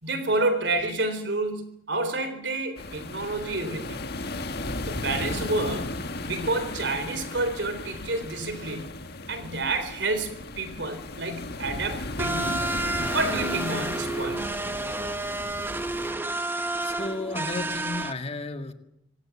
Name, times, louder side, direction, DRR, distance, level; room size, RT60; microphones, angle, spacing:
voice 1, 0.0-1.6 1.9-4.0 4.9-6.0 6.3-8.8 9.3-10.3 10.6-12.6 13.1-14.4, right 2 dB, 65° right, 10 dB, 3.9 m, -29 dB
sound 1, 2.8-16.1, left 2 dB, 55° left, 1.7 m, -35 dB
sound 2, 12.2-18.1, right 2 dB, 10° right, 1.3 m, -30 dB
voice 2, 16.8-18.7, left 2 dB, 35° left, 7 dB, 1.8 m, -33 dB
25.5 x 18.5 x 7.3 m, 0.81 s
head